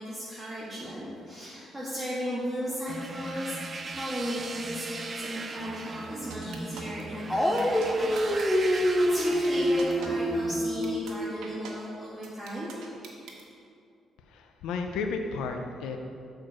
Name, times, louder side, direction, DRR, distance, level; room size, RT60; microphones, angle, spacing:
voice 1, 0.0-3.6 3.9-12.7, equal, 15° right, -9 dB, 1.5 m, -36 dB
sound 1, 2.9-10.6, right 3 dB, 40° right, 0.5 m, -38 dB
sound 2, 6.3-7.0 7.6-7.9 8.2-8.4 8.7-8.8 9.2-9.5 9.8-10.1 10.5-10.6 10.8-11.1 11.4-11.7 12.2-13.4, right 6 dB, 90° right, 1.0 m, -43 dB
Dog, 7.3-11.0, equal, 10° left, 0.7 m, -26 dB
voice 2, 14.2-16.0, left 4 dB, 90° left, 5 dB, 0.5 m, -33 dB
6.3 x 4.4 x 6.2 m, 2.5 s
cardioid pair, 90°, 0 cm